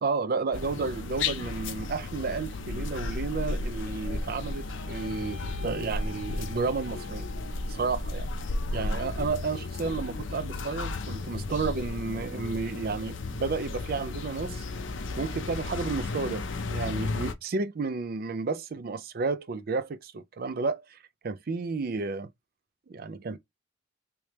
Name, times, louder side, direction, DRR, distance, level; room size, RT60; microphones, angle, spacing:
voice 1, 0.0-7.3 7.7-8.3 8.7-14.6 15.2-22.3 22.9-23.4, right 4 dB, 45° right, 0.4 m, -32 dB
sound 1, 0.5-17.3, left 3 dB, 65° left, 0.6 m, -34 dB
sound 2, 3.7-8.1, left 1 dB, 35° left, 1.1 m, -48 dB
3.3 x 3.2 x 2.9 m
head